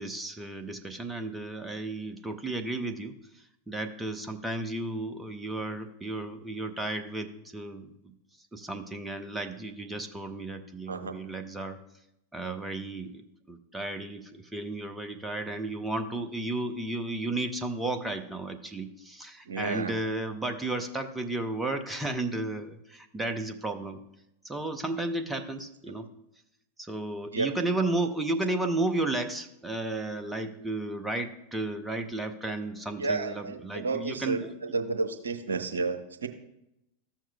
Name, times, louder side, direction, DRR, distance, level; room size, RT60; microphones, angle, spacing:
voice 1, 0.0-3.1 3.7-8.1 8.5-11.8 12.3-24.0 24.4-26.1 26.8-34.5, right 2 dB, 10° right, 6 dB, 0.8 m, -33 dB
voice 2, 10.9-11.2 19.5-20.0 27.3-27.5 33.0-36.3, right 3 dB, 70° right, 8 dB, 0.7 m, -31 dB
14.0 x 7.3 x 2.3 m, 0.82 s
figure-of-eight pair, 90°, 0 cm